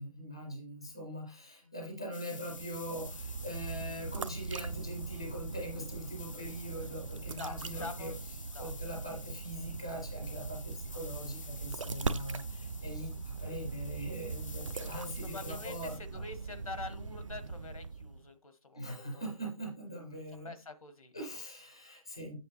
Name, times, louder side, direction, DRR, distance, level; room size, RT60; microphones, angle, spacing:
voice 1, 0.0-8.1 8.6-16.2 18.7-20.5 21.1-22.4, equal, 10° left, 0 dB, 0.4 m, -42 dB
sound 1, 2.1-16.0, left 4 dB, 65° left, 0.7 m, -51 dB
sound 2, 2.4-18.3, right 4 dB, 65° right, 0.6 m, -41 dB
voice 2, 7.2-8.2 8.5-8.7 15.2-19.2 20.3-21.4, left 3 dB, 85° left, 10 dB, 1.3 m, -46 dB
7.8 x 6.6 x 2.8 m, 0.32 s
figure-of-eight pair, 170°, 18 cm